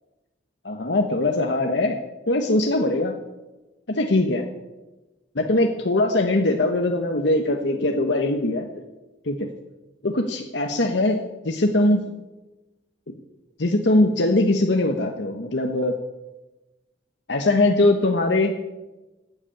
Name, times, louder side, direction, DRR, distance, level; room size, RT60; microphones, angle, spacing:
voice 1, 0.6-2.0 2.3-3.2 3.9-4.4 5.3-8.7 9.2-9.5 10.0-12.1 13.6-15.9 17.3-18.5, left 2 dB, 70° left, 3 dB, 1.2 m, -21 dB
14.0 x 8.3 x 8.6 m, 1.1 s
head